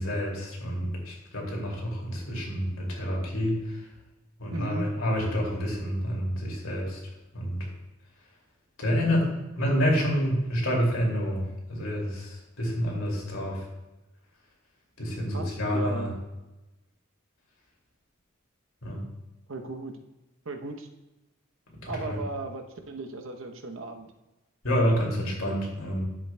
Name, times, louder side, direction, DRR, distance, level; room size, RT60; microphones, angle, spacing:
voice 1, 0.0-3.8 4.4-7.0 7.3-7.6 8.8-9.3 9.6-11.4 11.7-13.7 15.0-16.1 18.8-19.0 21.8-22.2 24.6-26.0, equal, 85° left, -2 dB, 2.5 m, -28 dB
voice 2, 4.5-4.9 15.3-16.2 19.5-20.0 20.5-20.9 21.9-24.1, right 2 dB, 75° right, 5 dB, 0.8 m, -36 dB
10.5 x 7.5 x 2.3 m, 1.0 s
head